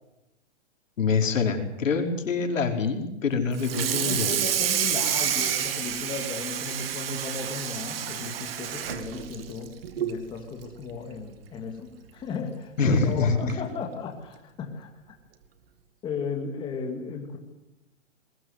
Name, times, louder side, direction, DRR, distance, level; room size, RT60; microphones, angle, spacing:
voice 1, 1.0-4.3 12.8-13.6, left 4 dB, 85° left, 4 dB, 4.8 m, -25 dB
Water tap faucet / Sink (filling or washing), 3.5-10.2 10.6-10.8 11.2-11.3 11.7-11.8 12.9-13.0 13.5-13.7, right 10 dB, 50° right, 2.3 m, -29 dB
voice 2, 4.0-14.9 16.0-17.4, left 5 dB, 10° left, 3 dB, 2.2 m, -35 dB
21.5 x 19.5 x 8.0 m, 0.91 s
hypercardioid pair, 165°, 38 cm